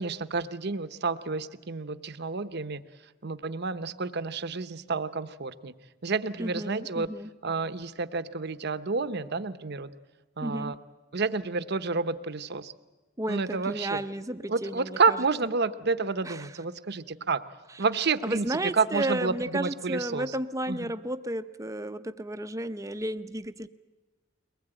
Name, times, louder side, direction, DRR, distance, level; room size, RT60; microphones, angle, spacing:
voice 1, 0.0-2.8 3.2-5.7 6.0-7.1 7.4-9.9 10.4-10.7 11.1-12.7 13.3-14.0 14.5-17.4 17.8-20.3 20.7-20.9, right 4 dB, 55° right, 12 dB, 0.9 m, -29 dB
voice 2, 6.4-7.3 10.4-10.8 13.2-15.2 16.2-16.5 18.2-23.7, right 1 dB, 15° right, 10 dB, 0.7 m, -33 dB
23.0 x 20.0 x 9.0 m, 1.2 s
head